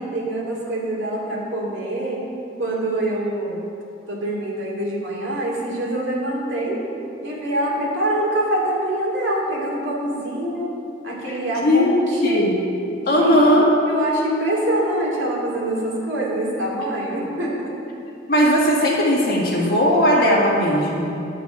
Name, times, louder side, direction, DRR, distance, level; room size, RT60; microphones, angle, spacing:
voice 1, 0.0-2.2 2.6-3.6 4.1-6.8 7.2-10.8 11.0-12.5 13.0-13.5 13.9-17.7, right 1 dB, 75° right, -4 dB, 2.5 m, -24 dB
voice 2, 11.6-12.5 13.1-13.7 18.3-21.2, equal, 50° left, -4 dB, 2.0 m, -18 dB
11.0 x 6.0 x 7.0 m, 2.6 s
head